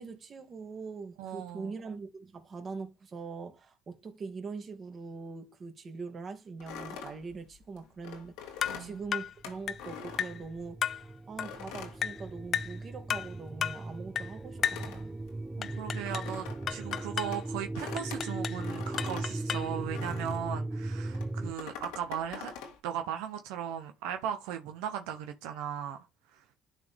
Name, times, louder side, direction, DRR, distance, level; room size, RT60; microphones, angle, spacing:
voice 1, 0.0-15.2, right 4 dB, 40° right, 2.1 m, -42 dB
voice 2, 1.2-1.7 8.7-9.0 15.6-22.5 22.8-26.1 26.3-26.4, right 9 dB, 90° right, 0.8 m, -37 dB
sound 1, 6.6-10.9 11.4-12.9 13.1-20.5 21.1-22.8, left 7 dB, 90° left, 1.9 m, -45 dB
sound 2, 8.6-8.8 9.1-9.3 9.7-9.9 10.2-10.4 10.8-11.0 11.4-11.6 12.0-12.2 12.5-12.8 13.1-13.3 13.6-13.8 14.2-14.3 14.6-14.9 15.6-16.3 16.7-17.4 18.0-18.6 19.0-19.8, left 8 dB, 50° left, 0.4 m, -33 dB
sound 3, 9.5-21.5, right 2 dB, 15° right, 0.4 m, -38 dB
12.0 x 4.2 x 3.5 m
supercardioid pair, 85°, 0 cm